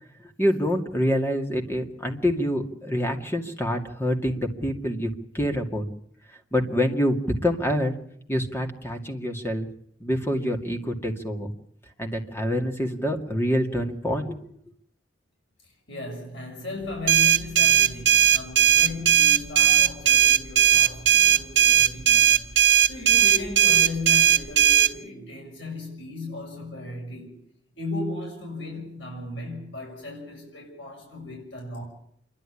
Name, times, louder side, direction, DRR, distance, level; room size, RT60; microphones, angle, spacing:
voice 1, 0.4-5.8 6.5-7.2 7.4-8.0 8.3-9.7 10.0-11.5 12.0-14.5, equal, 15° left, 2.3 m, -26 dB
voice 2, 15.6-27.4 27.8-31.8, left 2 dB, 75° left, 6.8 m, -36 dB
sound 1, 17.1-24.9, right 10 dB, 85° right, 1.2 m, -18 dB
27.5 x 12.0 x 10.0 m
head